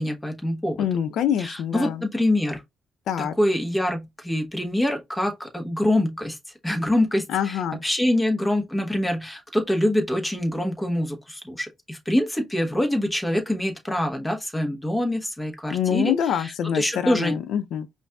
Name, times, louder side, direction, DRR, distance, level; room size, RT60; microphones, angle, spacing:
voice 1, 0.0-0.9 1.4-2.6 3.2-6.4 6.6-16.1 16.4-17.4, left 1 dB, 10° left, 1.1 m, -25 dB
voice 2, 0.8-2.1 3.1-3.3 7.3-7.8 15.7-17.9, left 9 dB, 75° left, 0.3 m, -25 dB
5.2 x 2.5 x 2.3 m
cardioid pair, 90°, 0 cm